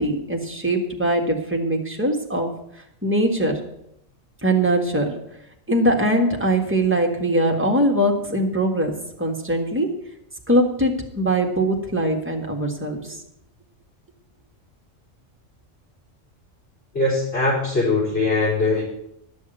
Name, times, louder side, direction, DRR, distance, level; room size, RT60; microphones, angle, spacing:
voice 1, 0.0-2.5 3.0-3.6 4.4-5.2 5.7-9.9 10.5-13.2, right 1 dB, 10° right, 1 dB, 1.7 m, -21 dB
voice 2, 16.9-18.8, left 3 dB, 55° left, -6 dB, 5.1 m, -21 dB
12.0 x 6.4 x 9.1 m, 0.76 s
omnidirectional pair, 1.3 m